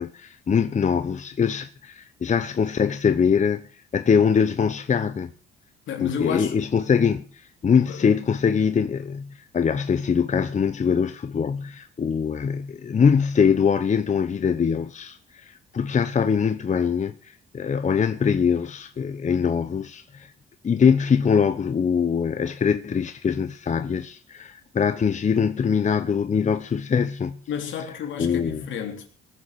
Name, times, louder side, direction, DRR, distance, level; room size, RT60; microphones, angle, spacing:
voice 1, 0.0-3.6 3.9-5.3 6.0-20.3 20.6-27.4 28.2-28.7, left 6 dB, 35° left, 1.0 m, -23 dB
voice 2, 5.9-6.6 7.9-8.0 27.5-29.1, left 8 dB, 75° left, 3.4 m, -30 dB
19.5 x 7.3 x 7.0 m
cardioid pair, 90°, 20 cm